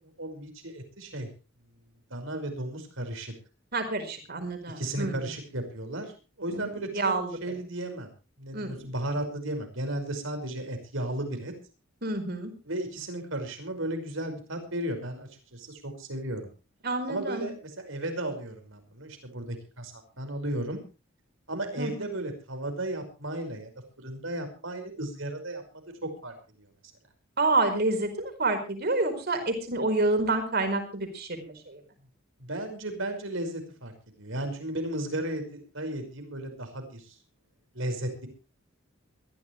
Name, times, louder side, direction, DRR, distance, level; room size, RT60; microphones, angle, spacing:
voice 1, 0.2-1.3 2.1-3.3 4.8-7.1 7.4-8.1 8.4-11.5 12.7-16.4 17.1-20.8 21.5-23.7 24.0-26.7 32.4-33.9 34.2-37.2 37.7-38.3, right 1 dB, 70° right, 6 dB, 5.4 m, -34 dB
voice 2, 3.7-5.3 6.5-6.6 6.9-7.3 8.5-8.8 12.0-12.5 16.8-17.5 21.8-21.9 27.4-31.8, right 2 dB, 50° right, 6 dB, 4.9 m, -28 dB
22.0 x 14.5 x 3.3 m, 0.32 s
head